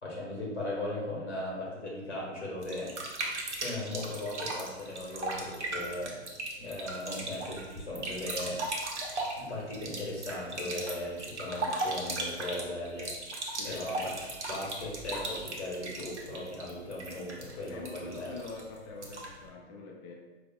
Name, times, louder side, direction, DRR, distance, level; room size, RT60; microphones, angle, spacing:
voice 1, 0.0-2.9 3.6-6.2 6.6-8.6 9.3-13.1 13.6-14.2 14.5-18.3, left 1 dB, 85° left, -4 dB, 1.4 m, -37 dB
sound 1, 2.6-19.4, right 2 dB, 85° right, 0.9 m, -38 dB
voice 2, 13.5-13.9 17.7-20.1, left 4 dB, 30° left, -1 dB, 0.4 m, -45 dB
4.6 x 2.5 x 2.3 m, 1.2 s
figure-of-eight pair, 110°, 34 cm